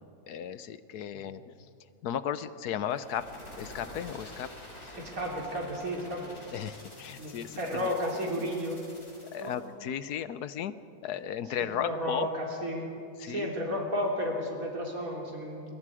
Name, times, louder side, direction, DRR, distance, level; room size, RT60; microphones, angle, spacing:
voice 1, 0.3-1.4 2.0-3.3 3.6-4.5 4.8-4.9 6.5-8.2 9.3-10.7 11.0-12.3 12.6-12.7 13.2-13.5, left 9 dB, 80° left, 14 dB, 1.3 m, -35 dB
sound 1, 2.8-9.7, left 1 dB, 45° left, 5.1 m, -48 dB
voice 2, 4.9-6.3 7.2-8.8 9.4-9.6 11.5-12.9 13.2-15.6, equal, 60° right, -1 dB, 3.7 m, -33 dB
27.5 x 22.5 x 4.9 m, 2.6 s
omnidirectional pair, 1.7 m